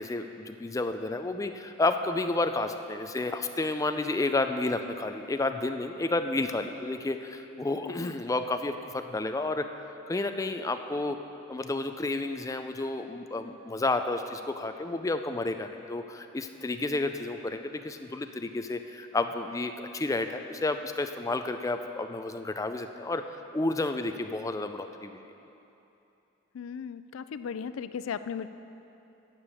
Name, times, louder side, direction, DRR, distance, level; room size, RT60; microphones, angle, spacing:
voice 1, 0.0-9.6 10.1-11.2 11.5-23.2 23.5-25.2, left 2 dB, 15° left, 7 dB, 0.4 m, -31 dB
voice 2, 26.5-28.5, left 7 dB, 90° left, 13 dB, 0.4 m, -36 dB
10.0 x 6.9 x 6.3 m, 2.9 s
head